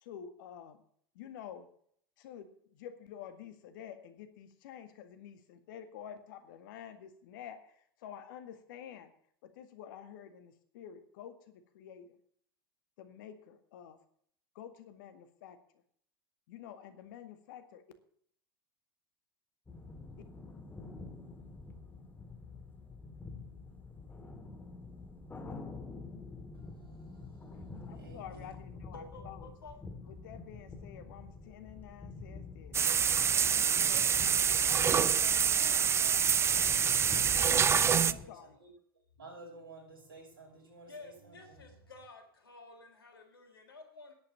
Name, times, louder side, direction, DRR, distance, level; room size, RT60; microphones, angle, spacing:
voice 1, 0.0-0.8 1.2-1.7 2.2-9.1 9.4-12.2 13.0-14.0 14.6-15.6 16.5-17.8 27.9-29.6 30.0-32.8 33.4-34.8 38.0-38.6, left 9 dB, 60° left, 9 dB, 1.9 m, -49 dB
sound 1, 19.7-38.2, left 3 dB, 15° left, 2.1 m, -47 dB
voice 2, 26.5-28.5 34.4-38.3 38.6-38.7 39.2-42.0, right 3 dB, 80° right, 0 dB, 6.1 m, -54 dB
voice 3, 28.9-29.7 40.9-44.1, left 3 dB, 80° left, 4 dB, 3.5 m, -52 dB
sound 2, 32.7-38.1, right 7 dB, 20° right, 0.5 m, -26 dB
10.5 x 8.5 x 8.6 m, 0.63 s
hypercardioid pair, 90°, 12 cm